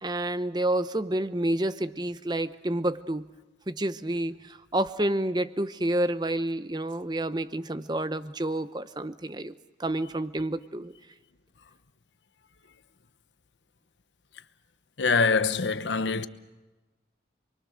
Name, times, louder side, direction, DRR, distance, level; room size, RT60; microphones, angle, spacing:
voice 1, 0.0-3.3 3.7-10.9, right 1 dB, 25° right, 0.8 m, -29 dB
voice 2, 15.0-16.3, left 4 dB, 85° left, 1.0 m, -24 dB
28.5 x 22.5 x 6.5 m
head